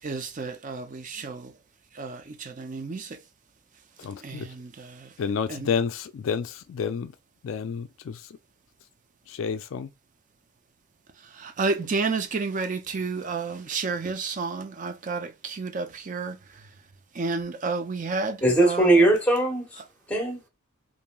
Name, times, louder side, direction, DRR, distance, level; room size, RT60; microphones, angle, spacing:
voice 1, 0.0-1.5 1.9-3.2 4.2-5.1 5.5-5.7 11.2-16.7 17.1-19.1, right 4 dB, 35° right, 0.4 m, -31 dB
voice 2, 4.0-4.5 5.2-7.1 7.4-8.2 9.4-9.9, left 6 dB, 65° left, 0.3 m, -29 dB
voice 3, 18.4-19.8 20.1-20.5, right 2 dB, 5° left, 1.0 m, -20 dB
3.0 x 2.6 x 2.2 m
head